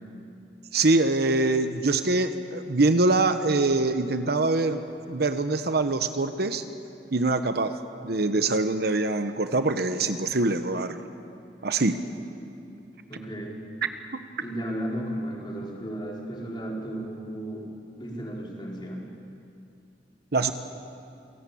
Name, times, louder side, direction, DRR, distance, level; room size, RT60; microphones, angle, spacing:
voice 1, 0.7-4.8 5.1-6.6 7.1-7.7 8.0-11.0 11.6-12.0 20.3-20.5, right 2 dB, 60° right, 9 dB, 1.1 m, -24 dB
voice 2, 13.1-13.6 14.4-17.7 17.9-19.0, right 1 dB, 25° left, -2 dB, 4.5 m, -34 dB
28.5 x 17.5 x 8.6 m, 2.6 s
head